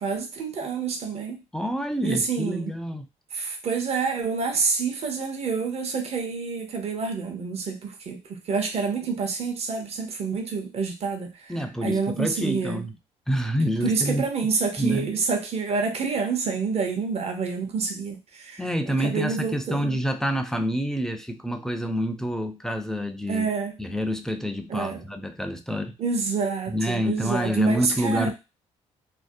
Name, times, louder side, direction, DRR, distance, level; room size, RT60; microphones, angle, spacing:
voice 1, 0.0-1.4 2.0-2.7 3.3-11.3 11.8-12.8 13.8-18.6 19.0-19.9 23.3-23.7 24.7-25.0 26.0-28.3, right 5 dB, 45° right, 4 dB, 0.7 m, -27 dB
voice 2, 1.5-3.1 11.5-13.0 13.3-14.2 14.8-15.1 18.6-23.5 23.8-25.9 26.7-28.3, equal, 5° left, 7 dB, 0.4 m, -27 dB
2.5 x 2.0 x 2.6 m, 0.27 s
supercardioid pair, 60°, 14 cm